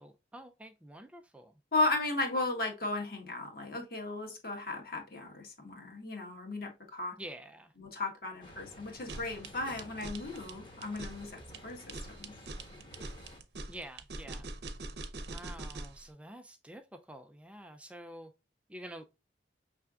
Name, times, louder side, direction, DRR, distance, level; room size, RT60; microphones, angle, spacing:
voice 1, 0.0-1.5 7.2-7.7 13.7-14.5 15.3-18.3 18.7-19.0, right 1 dB, 5° right, 0.3 m, -48 dB
voice 2, 1.7-7.2 7.8-12.3, left 2 dB, 55° left, 1.4 m, -35 dB
sound 1, 8.4-13.4, left 1 dB, 25° left, 1.1 m, -52 dB
sound 2, 8.9-16.0, right 2 dB, 65° right, 0.7 m, -43 dB
5.7 x 3.3 x 2.4 m
head